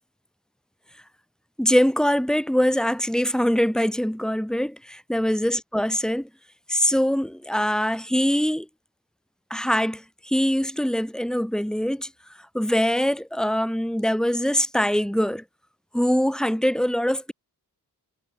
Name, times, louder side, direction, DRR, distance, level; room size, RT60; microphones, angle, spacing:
voice 1, 1.6-6.3 6.7-8.7 9.5-12.1 12.5-15.4 15.9-17.3, equal, ahead, 4.4 m, -23 dB
wide cardioid pair, 70°, 41 cm